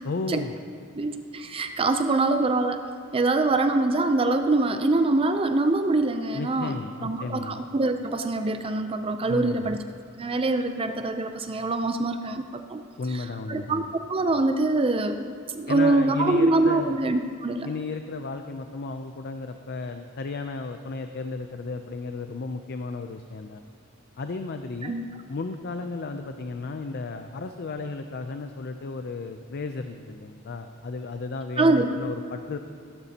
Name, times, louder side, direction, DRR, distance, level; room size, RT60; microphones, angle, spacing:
voice 1, 0.0-0.6 6.3-7.6 9.3-9.7 13.0-13.9 15.7-17.0 17.6-23.6 24.2-24.9 25.3-32.6, left 3 dB, 55° left, 7 dB, 0.5 m, -34 dB
voice 2, 1.0-2.8 3.1-6.7 7.0-9.8 10.2-12.8 13.5-13.8 14.1-15.3 15.5-17.7 24.8-25.1 31.6-32.0, right 2 dB, 25° right, 7 dB, 0.4 m, -24 dB
16.0 x 12.5 x 2.9 m, 2.4 s
head